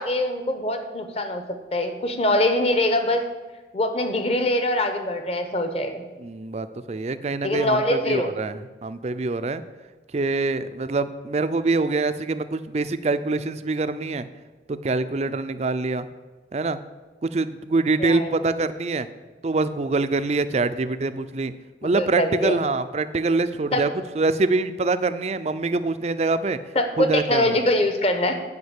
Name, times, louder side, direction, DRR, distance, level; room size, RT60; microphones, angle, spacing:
voice 1, 0.0-3.2 3.7-6.0 7.4-8.3 18.0-18.4 22.0-22.6 23.7-23.8 26.7-28.3, left 1 dB, 30° left, 7 dB, 0.9 m, -23 dB
voice 2, 6.2-9.6 10.1-14.3 14.7-16.1 16.5-16.8 17.2-19.1 19.4-21.5 21.8-23.9 24.2-26.6 27.0-27.6, right 3 dB, 35° right, 12 dB, 0.4 m, -25 dB
9.5 x 5.1 x 8.1 m, 1.2 s
head